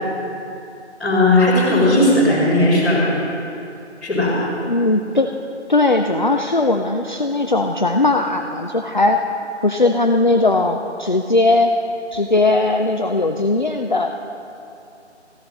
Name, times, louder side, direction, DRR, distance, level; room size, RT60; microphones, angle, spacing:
voice 1, 1.0-3.1 4.0-4.4, left 1 dB, ahead, -18 dB, 2.3 m, -16 dB
voice 2, 4.7-5.3 5.7-9.2 9.6-11.7 12.1-14.1, left 2 dB, 40° left, 3 dB, 0.5 m, -18 dB
14.5 x 9.1 x 5.3 m, 2.6 s
figure-of-eight pair, 160°, 35 cm